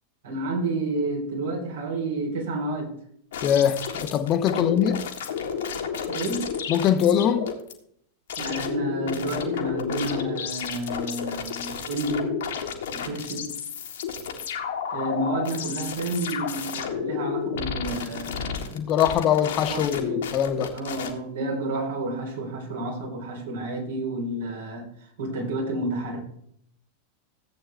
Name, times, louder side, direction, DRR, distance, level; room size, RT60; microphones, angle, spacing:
voice 1, 0.2-2.9 4.5-4.8 6.1-6.5 8.4-12.4 12.9-13.5 14.9-18.8 19.7-20.3 20.7-24.8 25.2-26.2, right 2 dB, 60° right, 3.8 m, -30 dB
sound 1, 3.3-7.7 8.3-21.1, left 7 dB, 60° left, 1.8 m, -31 dB
voice 2, 3.4-5.0 6.7-7.5 18.7-20.7, left 9 dB, 35° left, 1.2 m, -22 dB
14.5 x 8.7 x 3.4 m
figure-of-eight pair, 90°, 0 cm